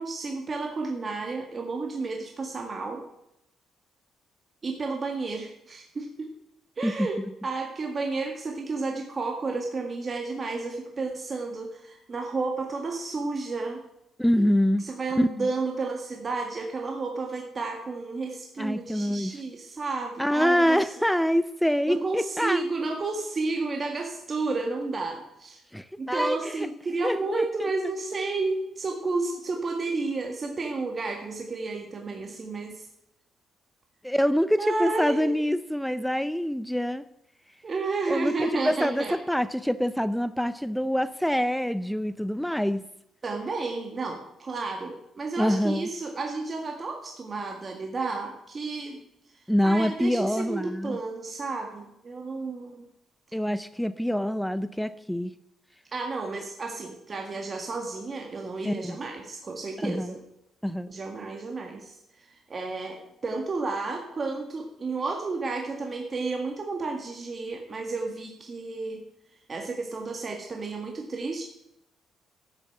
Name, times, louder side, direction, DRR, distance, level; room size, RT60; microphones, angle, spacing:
voice 1, 0.0-3.0 4.6-6.3 6.8-13.8 14.8-20.8 21.9-25.6 26.0-32.9 34.6-35.4 37.6-39.1 43.2-49.0 49.6-52.8 55.9-60.2 60.9-62.0 62.3-69.0 69.5-71.4, right 3 dB, 35° right, 2 dB, 1.8 m, -32 dB
voice 2, 14.2-14.9 15.2-15.5 18.6-19.4 20.2-22.6 25.7-26.7 27.0-27.7 34.0-37.0 38.1-42.8 45.4-45.9 49.5-51.0 53.3-55.3 58.6-59.0 59.8-60.1 60.6-60.9, equal, ahead, 14 dB, 0.5 m, -25 dB
12.5 x 7.0 x 7.9 m, 0.83 s
cardioid pair, 90°, 0 cm